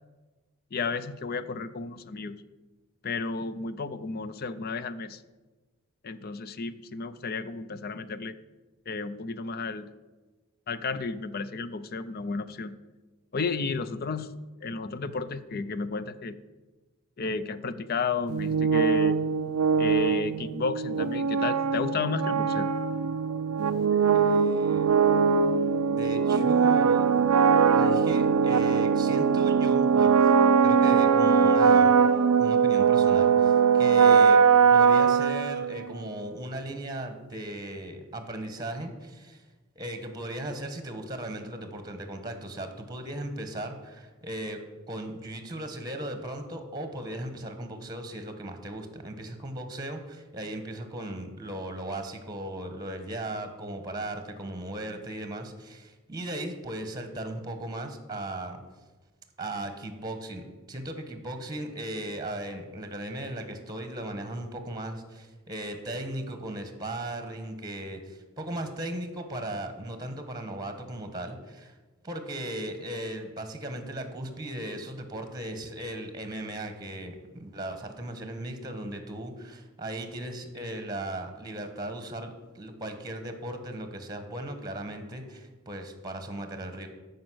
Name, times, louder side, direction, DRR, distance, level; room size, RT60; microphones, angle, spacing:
voice 1, 0.7-2.3 3.0-5.2 6.0-8.4 8.9-9.9 10.7-12.7 13.3-14.3 14.6-16.4 17.2-19.2 19.8-22.7, left 4 dB, 45° left, 14 dB, 0.5 m, -32 dB
sound 1, 18.3-35.9, right 6 dB, 90° right, 0.5 m, -21 dB
voice 2, 24.1-24.9 26.0-27.1 27.7-30.3 30.6-31.9 32.4-34.4 34.7-39.4 39.7-44.6 44.9-58.6 59.4-71.7 72.0-86.9, right 1 dB, 20° right, 7 dB, 1.2 m, -37 dB
13.5 x 5.3 x 6.3 m, 1.2 s
head